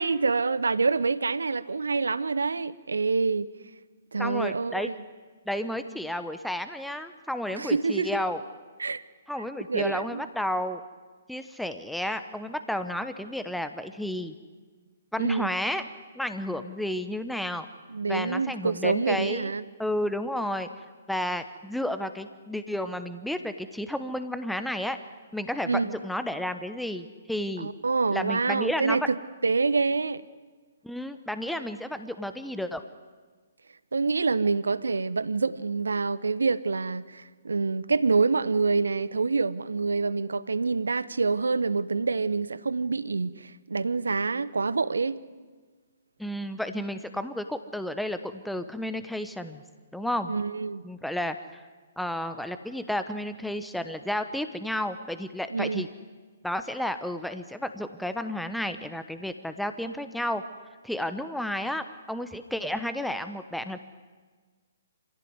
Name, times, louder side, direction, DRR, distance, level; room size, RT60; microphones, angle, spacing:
voice 1, 0.0-3.5 4.1-5.0 7.6-8.1 8.8-9.0 9.7-10.2 15.2-15.5 17.9-19.6 25.6-26.0 27.6-29.2 29.4-30.2 33.9-45.2 50.3-50.8 55.5-55.9, right 4 dB, 75° right, 0.9 m, -26 dB
voice 2, 4.2-4.9 5.5-8.4 9.3-10.8 11.3-14.3 15.1-15.8 16.1-17.7 18.1-19.5 19.8-20.7 21.1-25.0 25.3-27.7 28.1-29.1 30.8-32.8 46.2-49.6 49.9-50.3 50.8-51.6 52.0-55.9 56.4-60.4 60.8-63.8, left 1 dB, ahead, 1.0 m, -32 dB
26.0 x 16.5 x 9.7 m
figure-of-eight pair, 125°, 0 cm